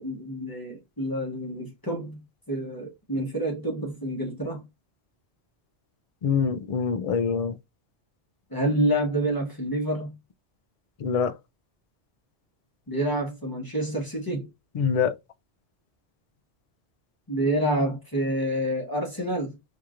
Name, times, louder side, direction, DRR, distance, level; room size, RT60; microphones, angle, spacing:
voice 1, 0.0-4.6 8.5-10.2 12.9-14.5 17.3-19.6, right 1 dB, 20° left, 0.8 m, -28 dB
voice 2, 6.2-7.6 11.0-11.3 14.7-15.1, left 6 dB, 70° left, 0.3 m, -25 dB
4.4 x 2.9 x 2.5 m
omnidirectional pair, 1.2 m